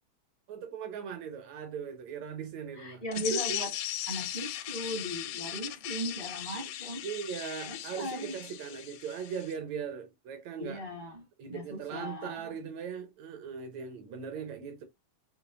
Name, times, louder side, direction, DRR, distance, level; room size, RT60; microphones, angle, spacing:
voice 1, 0.5-3.6 6.5-6.7 7.0-10.8 11.4-14.8, right 7 dB, 75° right, 1.7 m, -39 dB
voice 2, 2.7-3.7 4.1-7.0 7.6-8.4 10.6-11.2 11.5-12.5, equal, 40° right, 0.6 m, -38 dB
sound 1, 3.1-9.5, left 13 dB, 80° left, 1.9 m, -38 dB
6.8 x 2.5 x 2.5 m
omnidirectional pair, 3.9 m